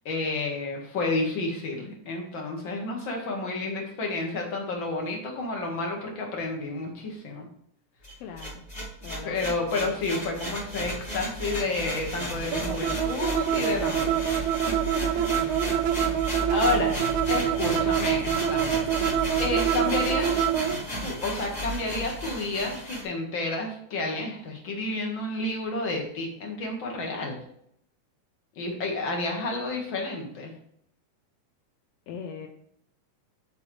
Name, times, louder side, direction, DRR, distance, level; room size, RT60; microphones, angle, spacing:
voice 1, 0.1-7.5 9.2-14.4 14.9-15.6 16.2-19.1 19.4-20.5 21.0-27.4 28.6-30.5, left 2 dB, 40° left, 1 dB, 2.1 m, -30 dB
sound 1, 8.0-23.0, equal, 20° left, 3.3 m, -33 dB
voice 2, 8.2-8.7 9.0-9.5 9.7-10.0 16.4-16.7 32.1-32.5, left 6 dB, 80° left, 3 dB, 1.5 m, -40 dB
sound 2, 12.5-20.8, right 10 dB, 80° right, 1.8 m, -26 dB
8.1 x 7.9 x 3.3 m, 0.70 s
omnidirectional pair, 3.8 m